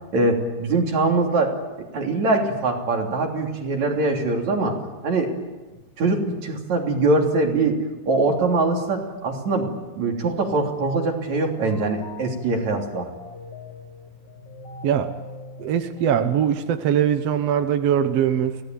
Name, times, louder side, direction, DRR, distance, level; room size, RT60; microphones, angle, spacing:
voice 1, 0.1-1.5 1.9-4.8 5.0-5.3 6.0-7.8 8.1-9.7 10.0-13.1, right 3 dB, 45° right, 2 dB, 4.2 m, -22 dB
sound 1, 11.2-16.7, left 2 dB, 40° left, 3.5 m, -42 dB
voice 2, 15.6-18.6, right 9 dB, 70° right, 8 dB, 1.5 m, -21 dB
25.5 x 17.5 x 9.3 m, 1.2 s
omnidirectional pair, 4.7 m